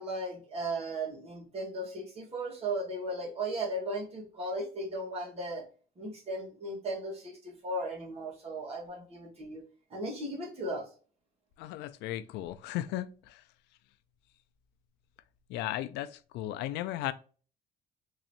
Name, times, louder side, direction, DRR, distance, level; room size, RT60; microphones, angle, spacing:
voice 1, 0.0-5.6 6.0-9.6 9.9-10.9, right 1 dB, 35° right, 1.9 m, -36 dB
voice 2, 11.6-13.4 15.5-17.1, left 14 dB, 90° left, 0.4 m, -36 dB
3.7 x 3.0 x 2.9 m
cardioid pair, 110°, 17 cm